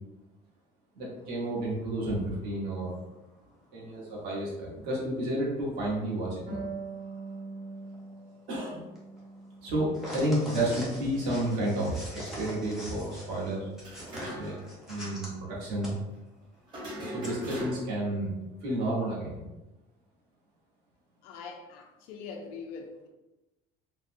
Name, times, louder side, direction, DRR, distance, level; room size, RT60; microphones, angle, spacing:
voice 1, 0.9-3.0 3.7-6.6 8.5-8.8 9.6-13.7 14.3-14.6 14.9-15.9 17.1-18.3 18.6-19.5, right 1 dB, 65° right, -5 dB, 1.0 m, -31 dB
sound 1, 1.2-4.0 4.5-15.3 15.8-15.9 16.3-16.4 16.7-17.3, equal, ahead, 0.6 m, -45 dB
Harp, 6.5-9.8 10.2-11.3, right 3 dB, 85° right, 1.3 m, -43 dB
sound 2, 13.8-14.7 15.0-15.1 16.7-18.1, equal, 25° right, 0.9 m, -39 dB
voice 2, 21.2-23.1, left 5 dB, 65° left, 2 dB, 0.4 m, -43 dB
3.7 x 2.0 x 2.5 m, 1.0 s
cardioid pair, 175°, 18 cm